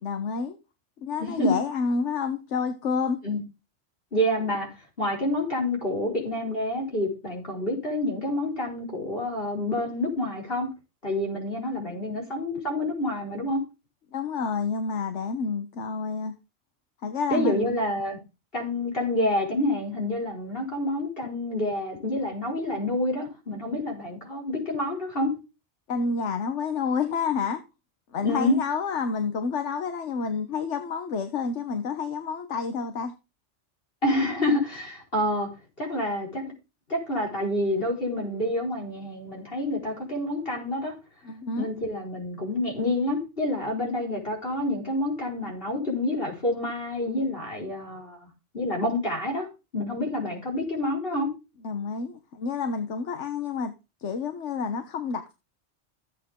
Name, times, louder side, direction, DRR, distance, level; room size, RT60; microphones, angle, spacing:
voice 1, 0.0-0.6 1.0-3.2 11.9-12.2 14.1-16.3 17.0-17.8 25.9-27.6 28.1-33.1 41.2-41.7 51.6-53.7 54.0-55.3, left 5 dB, 75° left, 1.4 m, -29 dB
voice 2, 1.2-1.5 3.2-3.4 4.1-4.7 5.0-10.7 11.0-13.6 17.3-18.2 18.5-25.3 28.2-28.5 34.0-35.5 35.8-36.4 36.9-40.9 41.6-48.3 48.5-49.5 49.7-51.3, left 1 dB, 50° left, 5.1 m, -28 dB
15.5 x 8.3 x 3.7 m
omnidirectional pair, 1.2 m